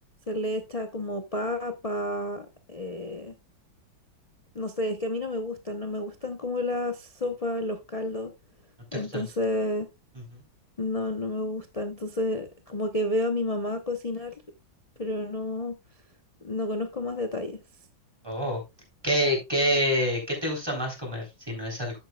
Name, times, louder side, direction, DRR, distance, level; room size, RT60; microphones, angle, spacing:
voice 1, 0.3-3.3 4.5-8.3 8.9-9.9 10.8-14.3 15.0-15.8 16.4-17.6, left 1 dB, 70° left, 6 dB, 0.3 m, -30 dB
voice 2, 8.9-9.2 18.2-18.6 19.0-21.9, equal, 10° right, -1 dB, 3.3 m, -27 dB
10.5 x 8.7 x 2.3 m, 0.24 s
omnidirectional pair, 2.1 m